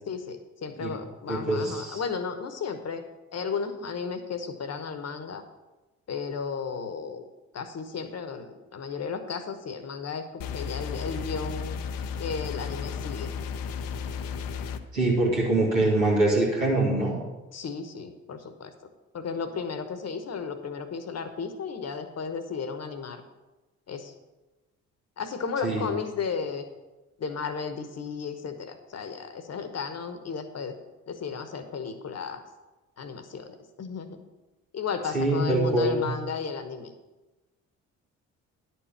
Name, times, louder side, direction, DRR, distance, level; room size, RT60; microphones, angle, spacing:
voice 1, 0.1-3.0 3.3-5.4 6.1-7.2 7.5-11.8 12.2-13.3 17.5-18.7 19.1-23.2 23.9-24.1 25.2-26.7 27.2-30.7 31.1-32.4 33.0-34.2 34.7-36.9, left 5 dB, 40° left, 9 dB, 1.1 m, -34 dB
voice 2, 1.3-2.0 14.9-17.1 25.6-25.9 35.1-36.0, right 2 dB, 90° right, -5 dB, 2.1 m, -24 dB
sound 1, 10.4-14.8, left 6 dB, 60° left, 0.7 m, -34 dB
10.5 x 4.5 x 7.2 m, 1.1 s
figure-of-eight pair, 45°, 39 cm